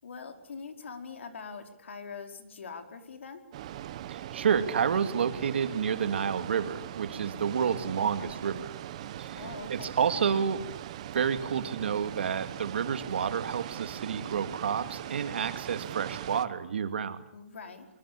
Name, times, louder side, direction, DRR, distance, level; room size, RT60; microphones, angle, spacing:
voice 1, 0.0-3.4 9.3-9.9 17.3-17.9, left 5 dB, 75° left, 6 dB, 5.0 m, -43 dB
sound 1, 3.5-16.4, right 12 dB, 30° right, 1.1 m, -40 dB
voice 2, 4.1-8.7 9.2-9.4 9.7-10.6 11.1-17.2, right 7 dB, 60° right, 9 dB, 2.5 m, -29 dB
24.5 x 24.5 x 8.6 m, 0.74 s
hypercardioid pair, 175°, 7 cm